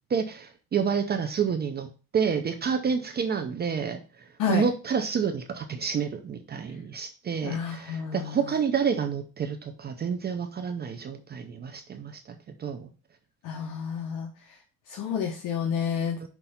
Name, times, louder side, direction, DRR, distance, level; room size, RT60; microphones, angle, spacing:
voice 1, 0.1-12.9 16.2-16.3, right 6 dB, 30° right, 6 dB, 0.6 m, -29 dB
voice 2, 7.4-8.4 13.4-14.3 14.9-16.3, left 7 dB, 60° left, 2 dB, 1.1 m, -30 dB
5.9 x 3.3 x 5.6 m, 0.33 s
cardioid pair, 145°, 36 cm